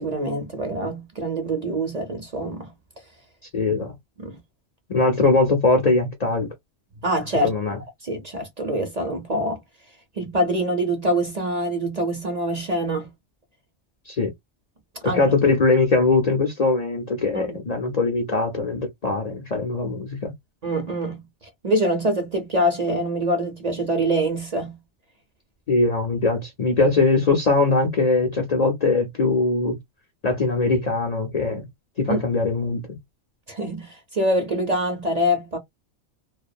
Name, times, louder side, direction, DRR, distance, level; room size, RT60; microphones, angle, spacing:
voice 1, 0.0-2.7 4.2-4.4 7.0-7.5 8.0-9.6 10.2-13.1 15.0-15.2 17.3-17.6 20.6-21.2 21.6-24.8 32.1-32.2 33.5-35.6, right 1 dB, 40° right, 0.7 m, -25 dB
voice 2, 3.5-3.9 4.9-6.5 7.4-7.8 14.1-14.3 15.0-20.3 25.7-29.8 30.2-31.7 32.0-32.9, left 3 dB, 45° left, 0.6 m, -21 dB
2.4 x 2.2 x 2.5 m
omnidirectional pair, 1.2 m